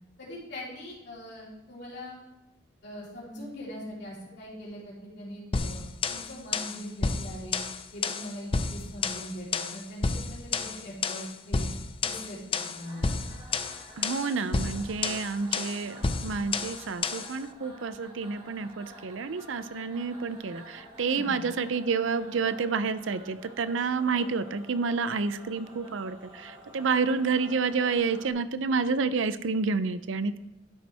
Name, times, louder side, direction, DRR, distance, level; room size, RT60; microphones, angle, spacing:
voice 1, 0.2-2.2 2.8-7.6 7.9-11.7 12.0-13.1 21.0-21.4, equal, 60° left, -6 dB, 3.6 m, -41 dB
sound 1, 5.5-17.4, left 4 dB, 30° left, 0.5 m, -31 dB
sound 2, 12.8-28.3, equal, 30° right, 2.8 m, -50 dB
voice 2, 14.0-30.4, right 4 dB, 75° right, 13 dB, 0.5 m, -29 dB
12.0 x 7.9 x 3.4 m, 0.94 s
head